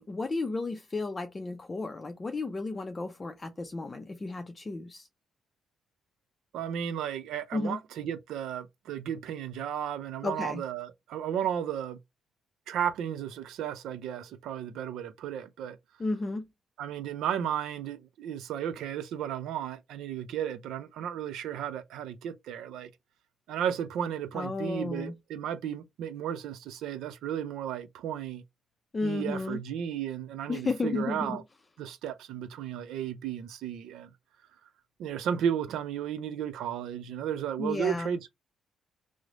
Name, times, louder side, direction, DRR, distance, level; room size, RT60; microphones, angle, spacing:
voice 1, 0.0-5.1 7.5-7.8 10.2-10.6 16.0-16.5 24.3-25.1 28.9-29.6 30.5-31.4 37.6-38.2, left 3 dB, 25° left, 0.4 m, -33 dB
voice 2, 6.5-12.0 12.7-15.8 16.8-22.9 23.5-28.4 29.0-31.4 31.8-34.1 35.0-38.3, right 9 dB, 85° right, 0.5 m, -34 dB
3.2 x 2.0 x 3.7 m
cardioid pair, 90°, 0 cm